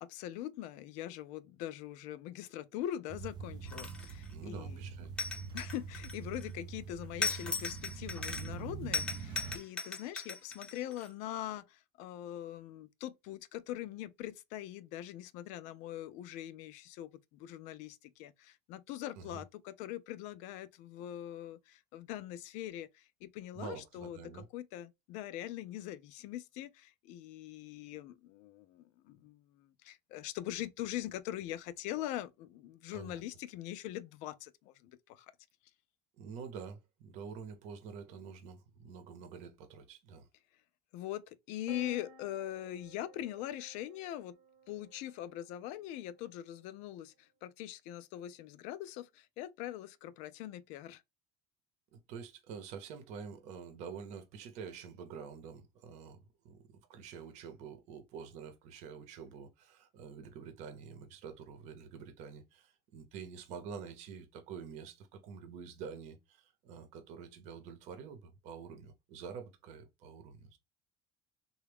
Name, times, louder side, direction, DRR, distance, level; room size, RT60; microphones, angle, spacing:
voice 1, 0.0-4.8 5.5-35.3 40.9-44.4 44.7-51.0, left 13 dB, 65° left, 0.4 m, -42 dB
sound 1, 3.1-9.6, right 5 dB, 30° right, 0.4 m, -44 dB
sound 2, 3.7-4.3 5.2-6.5 7.2-8.6 8.9-11.1, left 4 dB, 5° left, 0.6 m, -38 dB
voice 2, 4.3-5.4 19.2-19.4 23.5-24.5 32.9-33.2 36.2-40.3 51.9-70.6, right 6 dB, 60° right, 0.8 m, -47 dB
sound 3, 41.7-45.4, right 3 dB, 85° right, 1.0 m, -54 dB
3.4 x 2.3 x 3.4 m
supercardioid pair, 130°, 13 cm